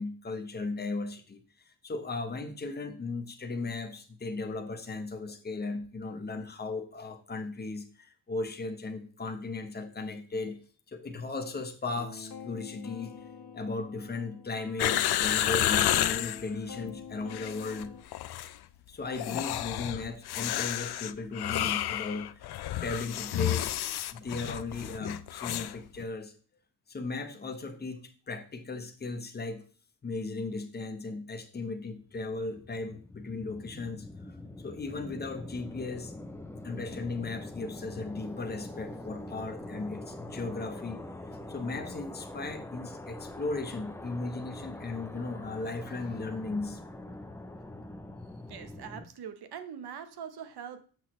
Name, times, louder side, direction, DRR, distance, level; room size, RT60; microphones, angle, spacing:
voice 1, 0.0-10.6 10.9-13.1 13.5-17.9 18.9-22.5 22.8-23.7 24.1-26.3 26.9-29.6 30.0-34.1 34.6-36.1 36.6-41.0 41.5-46.8, left 3 dB, 25° left, 6 dB, 0.9 m, -36 dB
sound 1, 11.9-18.0, left 5 dB, 60° left, 1.1 m, -46 dB
sound 2, 14.8-16.4 17.2-17.9 18.1-18.5 19.1-25.7 26.0-26.1, left 13 dB, 85° left, 0.5 m, -30 dB
sound 3, 31.9-49.1, left 1 dB, 5° left, 0.4 m, -44 dB
voice 2, 48.5-50.8, right 8 dB, 85° right, 10 dB, 0.9 m, -42 dB
7.1 x 6.2 x 3.0 m, 0.41 s
wide cardioid pair, 180°, 38 cm